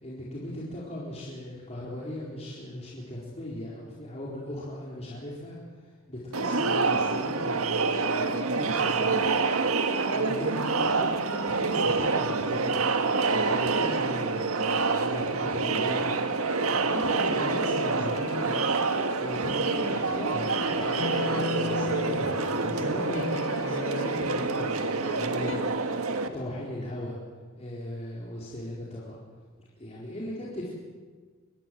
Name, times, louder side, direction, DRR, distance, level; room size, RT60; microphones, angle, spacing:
voice 1, 0.0-5.6 6.1-9.4 10.1-12.8 13.3-16.2 16.7-18.6 19.1-27.2 27.6-29.2 29.8-30.7, left 1 dB, 30° left, -5 dB, 4.2 m, -37 dB
Crowd, 6.3-26.3, right 4 dB, 85° right, 1.7 m, -27 dB
sound 1, 16.0-25.6, left 3 dB, 65° left, 1.5 m, -38 dB
24.5 x 20.0 x 7.7 m, 1.5 s
head